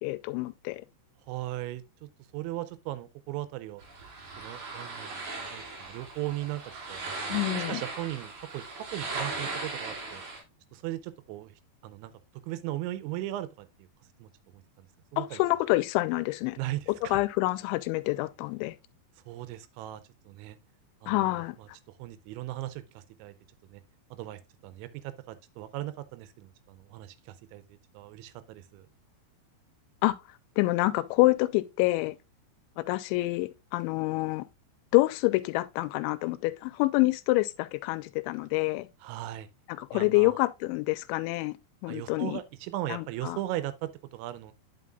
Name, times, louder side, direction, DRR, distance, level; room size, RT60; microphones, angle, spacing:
voice 1, 0.0-0.8 7.3-7.8 15.2-16.6 17.1-18.8 21.1-21.6 30.0-30.2 30.6-32.2 32.8-34.5 34.9-38.9 39.7-41.5 41.8-42.4 42.9-43.4, left 20 dB, 85° left, 2.9 m, -27 dB
voice 2, 1.3-3.8 4.4-6.6 6.9-7.0 7.5-10.2 10.7-11.6 11.8-12.1 12.5-13.7 14.2-14.3 15.1-15.4 16.6-17.2 19.3-20.6 21.0-21.7 22.0-23.3 23.7-23.8 24.1-28.9 39.0-39.5 39.9-40.4 41.9-44.5, right 15 dB, 85° right, 3.0 m, -38 dB
sound 1, 3.8-10.4, right 3 dB, 50° right, 3.2 m, -38 dB
9.3 x 5.8 x 2.4 m
omnidirectional pair, 5.3 m